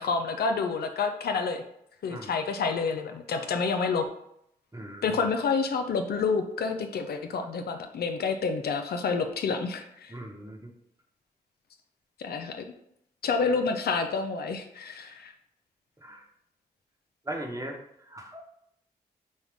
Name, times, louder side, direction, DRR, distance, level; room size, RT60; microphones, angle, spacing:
voice 1, 0.0-1.6 2.0-4.1 5.0-10.1 12.2-12.6 13.2-15.3, left 4 dB, 65° left, 6 dB, 0.5 m, -28 dB
voice 2, 4.7-5.2 10.1-10.7 16.0-16.2 17.2-18.5, right 1 dB, 20° right, 1 dB, 1.1 m, -39 dB
5.2 x 2.3 x 3.5 m, 0.74 s
supercardioid pair, 45°, 17 cm